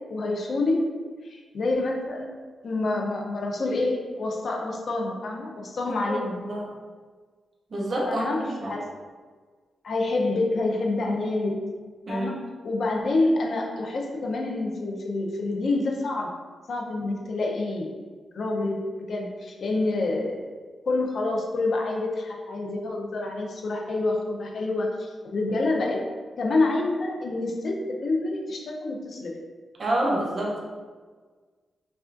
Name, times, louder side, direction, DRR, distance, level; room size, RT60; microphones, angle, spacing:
voice 1, 0.1-0.9 1.2-2.3 2.6-6.4 8.1-8.8 9.8-11.7 12.1-16.4 16.7-17.9 18.3-20.4 20.9-26.0 26.4-29.3, left 2 dB, 60° left, 0 dB, 0.6 m, -27 dB
voice 2, 6.1-6.7 7.7-8.8 12.1-12.3 29.8-30.6, right 1 dB, 50° right, -3 dB, 0.6 m, -28 dB
4.8 x 2.4 x 2.5 m, 1.5 s
cardioid pair, 95°, 0 cm